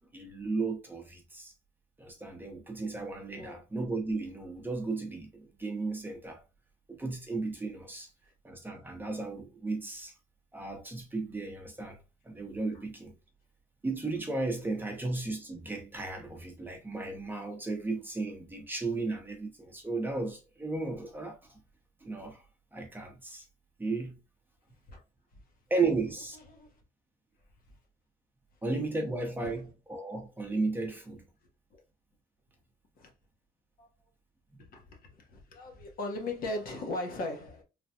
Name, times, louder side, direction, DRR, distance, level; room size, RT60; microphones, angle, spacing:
voice 1, 0.1-1.5 2.0-6.4 6.9-8.1 8.4-10.1 10.5-12.0 12.2-13.1 13.8-21.6 22.0-22.4 22.7-23.5 23.8-24.2 25.7-26.4 28.6-31.2, right 3 dB, 10° right, 0.7 m, -34 dB
voice 2, 34.6-37.6, left 2 dB, 60° left, 0.9 m, -38 dB
3.3 x 2.2 x 2.6 m
cardioid pair, 110°, 17 cm